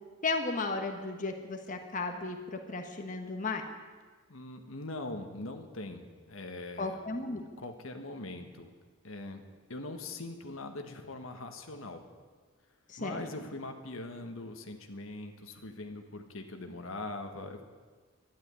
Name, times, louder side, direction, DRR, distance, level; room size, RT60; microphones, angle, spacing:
voice 1, 0.2-3.6 6.8-7.4 12.9-13.2, left 3 dB, 40° left, 4 dB, 1.4 m, -34 dB
voice 2, 4.3-7.0 7.6-8.7 9.0-9.4 9.7-12.0 13.0-17.6, left 2 dB, 75° left, 5 dB, 1.5 m, -42 dB
12.5 x 11.0 x 9.7 m, 1.4 s
head